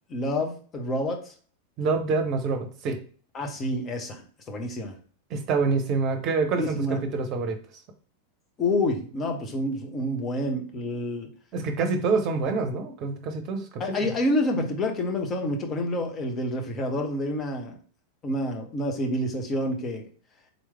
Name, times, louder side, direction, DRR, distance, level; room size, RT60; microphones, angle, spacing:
voice 1, 0.1-1.3 3.3-5.0 6.6-7.0 8.6-11.3 13.8-17.8 18.2-20.1, left 1 dB, 25° left, 3 dB, 0.9 m, -28 dB
voice 2, 1.8-3.0 5.3-7.6 11.5-14.1, right 4 dB, 35° right, 6 dB, 0.8 m, -26 dB
4.0 x 3.2 x 3.4 m, 0.42 s
figure-of-eight pair, 90°, 0 cm